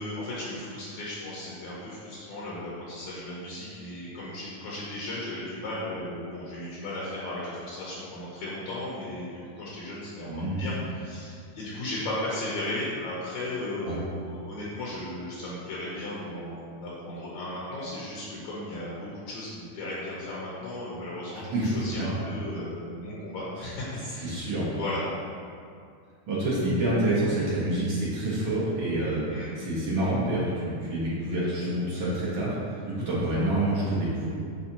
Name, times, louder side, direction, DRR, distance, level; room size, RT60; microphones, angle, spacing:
voice 1, 0.0-25.1 29.3-29.5, left 1 dB, 70° left, -6 dB, 2.1 m, -36 dB
voice 2, 10.3-10.7 13.8-14.0 21.3-21.8 23.6-23.7 23.9-24.7 26.3-29.2 29.6-34.3, right 1 dB, 55° right, -7 dB, 1.5 m, -27 dB
9.9 x 3.4 x 2.8 m, 2.3 s
omnidirectional pair, 3.6 m